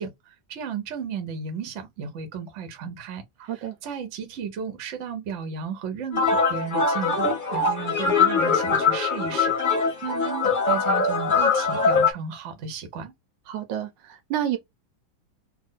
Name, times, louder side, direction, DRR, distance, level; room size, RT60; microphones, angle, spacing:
voice 1, 0.0-13.1, right 6 dB, 55° right, 0.8 m, -34 dB
voice 2, 3.4-3.8 13.5-14.6, right 11 dB, 75° right, 1.2 m, -29 dB
sound 1, 6.1-12.1, left 4 dB, 30° left, 1.0 m, -22 dB
3.3 x 2.2 x 3.6 m
omnidirectional pair, 2.1 m